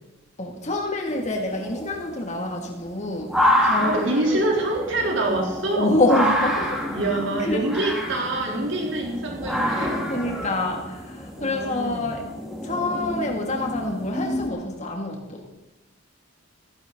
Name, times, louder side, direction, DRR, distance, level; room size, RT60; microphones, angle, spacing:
voice 1, 0.4-4.5 5.7-6.9 7.4-7.7 10.1-12.3 12.6-15.5, left 2 dB, 35° left, 0 dB, 2.8 m, -26 dB
sound 1, 1.1-14.5, equal, ahead, 2.4 m, -28 dB
voice 2, 3.7-5.9 6.9-10.0 11.4-12.1, right 2 dB, 60° right, -1 dB, 4.0 m, -25 dB
15.5 x 15.5 x 4.2 m, 1.0 s
head